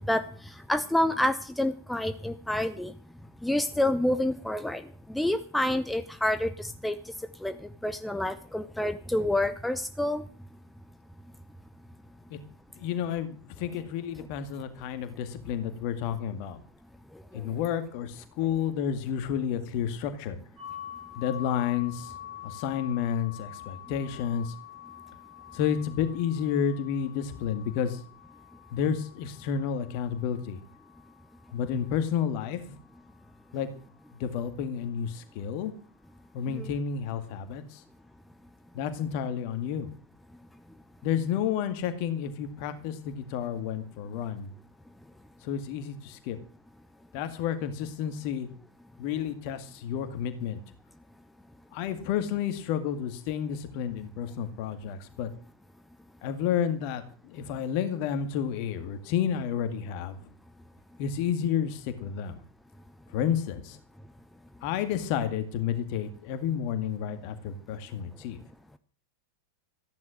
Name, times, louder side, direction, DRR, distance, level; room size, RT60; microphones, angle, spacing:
voice 1, 0.0-2.9 3.4-4.8 5.1-7.0 7.4-7.5 7.8-10.2 36.5-36.7, left 1 dB, 5° left, 10 dB, 0.8 m, -28 dB
voice 2, 12.8-16.6 17.3-20.4 21.2-22.1 22.4-24.5 25.5-28.0 28.7-30.6 31.5-32.8 33.5-33.7 34.2-35.7 36.3-37.8 38.7-39.9 41.0-44.5 45.4-46.4 47.1-48.5 49.0-50.6 51.7-55.3 56.2-60.3 61.0-62.4 63.1-63.8 64.6-68.4, left 8 dB, 45° left, 9 dB, 2.0 m, -31 dB
sound 1, 20.6-32.3, left 12 dB, 25° right, 4.2 m, -47 dB
14.5 x 10.5 x 6.3 m, 0.42 s
figure-of-eight pair, 90°, 0 cm